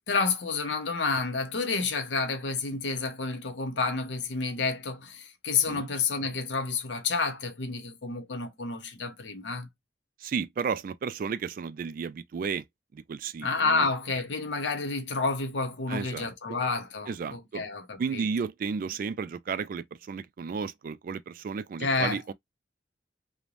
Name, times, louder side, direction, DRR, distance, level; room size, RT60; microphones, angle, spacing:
voice 1, 0.1-9.7 13.4-18.2 21.8-22.3, left 4 dB, 90° left, 0.8 m, -30 dB
voice 2, 10.2-12.6 12.9-13.9 15.9-16.6 17.1-17.6 18.0-22.3, right 5 dB, 50° right, 0.3 m, -33 dB
3.1 x 2.1 x 2.4 m
head